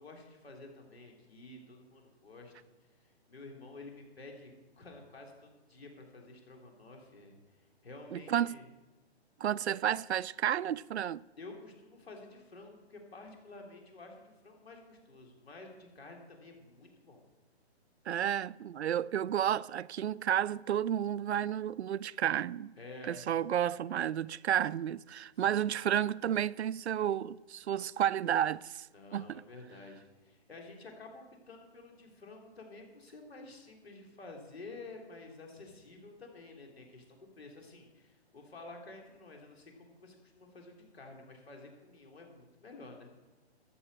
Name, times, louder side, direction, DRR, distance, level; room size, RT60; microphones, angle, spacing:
voice 1, 0.0-2.5 3.0-8.7 11.4-17.2 22.8-23.2 25.3-25.6 28.9-43.1, left 2 dB, 65° left, 3.6 m, -51 dB
voice 2, 8.1-8.6 9.4-11.2 18.1-22.7 23.1-28.9 29.1-29.4, right 10 dB, 80° right, 0.5 m, -31 dB
14.0 x 7.0 x 7.6 m
hypercardioid pair, 180°, 33 cm